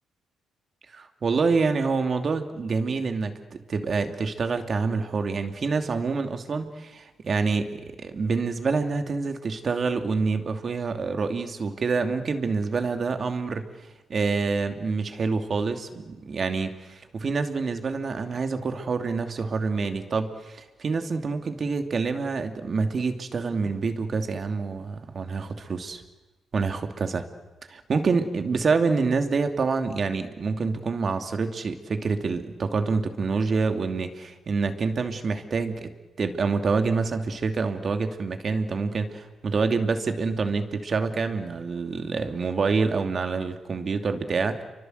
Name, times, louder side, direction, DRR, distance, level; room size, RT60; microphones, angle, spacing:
voice 1, 0.9-13.7 14.1-26.0 26.5-27.2 27.7-35.9 36.2-44.7, right 4 dB, 45° right, 7 dB, 2.7 m, -27 dB
29.5 x 24.5 x 8.1 m, 1.2 s
cardioid pair, 90°, 0 cm